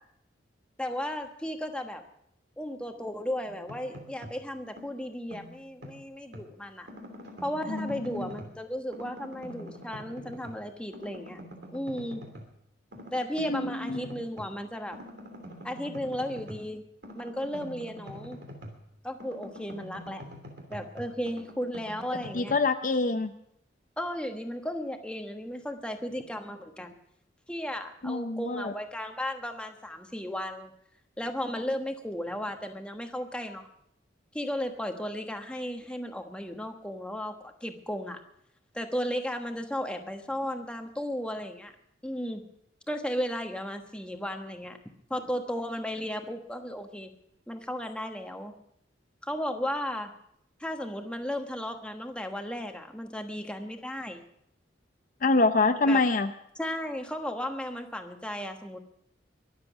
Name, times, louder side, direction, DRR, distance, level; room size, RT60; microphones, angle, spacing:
voice 1, 0.8-2.0 2.6-6.9 7.4-11.4 11.7-12.2 13.1-15.0 15.6-16.8 17.1-18.4 19.0-20.2 20.7-22.6 24.0-26.9 27.5-30.7 31.2-33.7 34.3-38.2 38.7-41.7 42.0-42.4 42.9-44.8 45.1-47.1 47.5-48.5 49.2-50.1 50.6-54.2 55.9-56.0 56.6-58.8, equal, 5° left, 5 dB, 1.3 m, -35 dB
sound 1, 3.4-4.4 4.8-6.5 6.9-8.6 8.9-10.7 10.9-12.5 12.9-14.5 14.9-18.9 19.2-22.5, equal, 60° right, 3.0 m, -45 dB
voice 2, 7.7-8.3 13.4-14.1 22.3-23.3 28.0-28.7 55.2-56.3, left 3 dB, 45° left, 8 dB, 0.6 m, -26 dB
23.0 x 7.6 x 6.0 m, 0.73 s
head